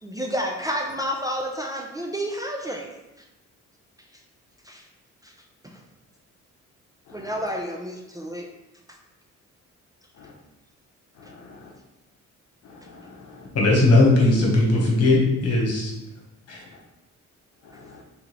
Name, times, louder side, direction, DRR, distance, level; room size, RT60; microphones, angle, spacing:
voice 1, 0.0-3.0 4.1-4.2 4.6-4.8 5.2-5.3 5.6-5.8 7.1-8.5 8.9-9.0 11.2-11.3, equal, 10° right, 1 dB, 0.4 m, -30 dB
voice 2, 11.2-11.7 12.6-13.5 17.6-18.0, left 4 dB, 70° left, -1 dB, 0.8 m, -47 dB
voice 3, 13.5-15.9 16.5-16.6, left 2 dB, 55° left, -2 dB, 1.4 m, -18 dB
3.6 x 3.5 x 3.1 m, 0.96 s
cardioid pair, 90°, 30 cm